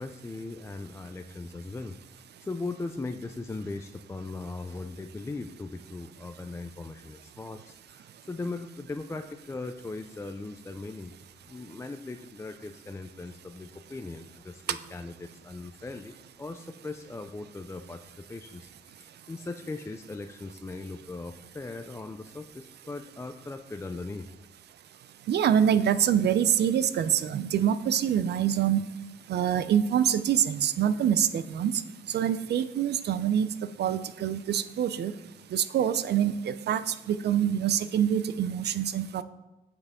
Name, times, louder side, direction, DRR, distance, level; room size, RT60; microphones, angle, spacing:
voice 1, 0.0-11.1 11.4-24.3, left 3 dB, 15° left, 7 dB, 0.4 m, -39 dB
voice 2, 25.3-28.8 29.3-31.7 32.1-33.5 33.8-35.1 35.5-39.2, right 9 dB, 60° right, 14 dB, 0.5 m, -25 dB
7.9 x 6.0 x 3.6 m, 1.1 s
cardioid pair, 90°, 20 cm